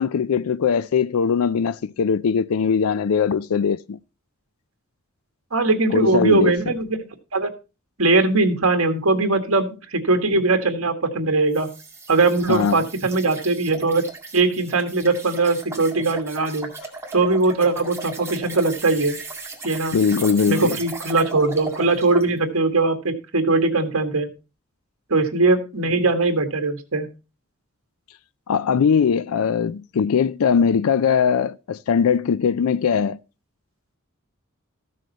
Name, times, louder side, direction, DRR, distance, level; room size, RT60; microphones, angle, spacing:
voice 1, 0.0-4.0 5.9-6.5 12.5-12.8 19.9-20.8 28.5-33.2, left 6 dB, 80° left, 0.4 m, -20 dB
voice 2, 5.5-7.0 7.3-7.5 8.0-11.7 12.1-14.0 14.3-16.7 17.1-19.2 19.6-20.0 20.5-24.3 25.1-27.1, right 3 dB, 70° right, 1.8 m, -20 dB
sound 1, 11.5-22.3, right 3 dB, 15° right, 2.0 m, -37 dB
14.0 x 6.4 x 4.2 m
head